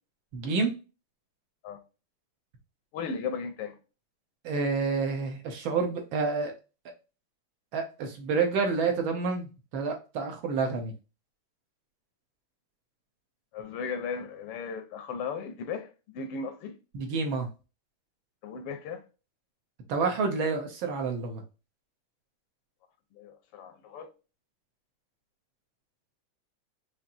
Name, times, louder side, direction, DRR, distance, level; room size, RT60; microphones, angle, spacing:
voice 1, 0.3-0.8 4.4-6.5 7.7-10.9 16.9-17.5 19.9-21.4, right 4 dB, 70° right, 1.7 m, -29 dB
voice 2, 2.9-3.8 13.5-16.8 18.4-19.0 23.1-24.1, left 5 dB, 85° left, 1.8 m, -36 dB
5.7 x 2.7 x 2.5 m
omnidirectional pair, 2.4 m